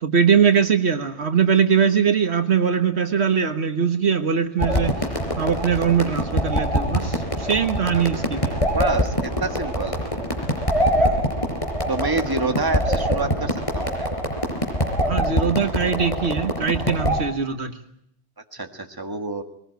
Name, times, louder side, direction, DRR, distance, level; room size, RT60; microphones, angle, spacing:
voice 1, 0.0-5.1 5.4-8.6 10.9-11.2 15.0-17.7, right 6 dB, 70° right, 7 dB, 1.6 m, -21 dB
sound 1, 4.6-17.2, equal, 30° left, 4.5 m, -24 dB
voice 2, 8.7-10.0 11.9-14.1 18.5-19.4, right 2 dB, 20° right, 5 dB, 1.7 m, -27 dB
22.0 x 20.0 x 9.2 m, 0.73 s
omnidirectional pair, 1.2 m